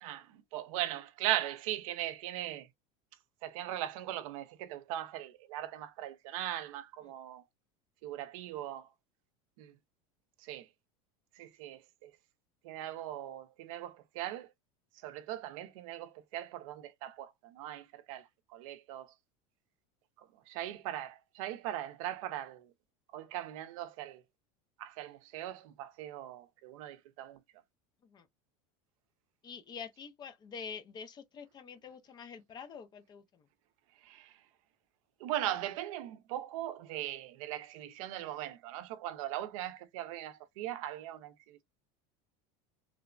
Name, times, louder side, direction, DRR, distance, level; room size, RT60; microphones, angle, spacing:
voice 1, 0.0-2.7 3.4-7.4 8.0-8.9 9.6-9.8 10.4-10.7 11.3-12.1 12.6-14.5 14.9-19.1 20.2-22.7 23.1-24.2 24.8-27.4 33.9-34.4 35.2-41.6, right 13 dB, 75° right, 0.5 m, -39 dB
voice 2, 29.4-33.4, left 6 dB, 25° left, 0.4 m, -46 dB
3.1 x 2.0 x 2.4 m
supercardioid pair, 145°, 18 cm